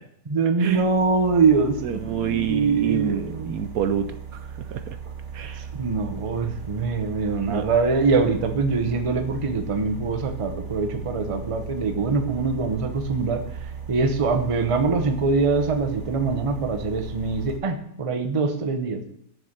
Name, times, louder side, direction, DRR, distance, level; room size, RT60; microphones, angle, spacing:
voice 1, 0.3-3.6 5.7-13.4 13.9-19.0, right 4 dB, 30° right, 7 dB, 0.7 m, -23 dB
sound 1, 0.7-17.6, right 7 dB, 50° right, 1.3 m, -37 dB
voice 2, 1.8-5.0 5.3-5.7 7.5-7.7, right 9 dB, 70° right, 9 dB, 1.0 m, -28 dB
7.0 x 6.9 x 7.3 m, 0.75 s
omnidirectional pair, 1.7 m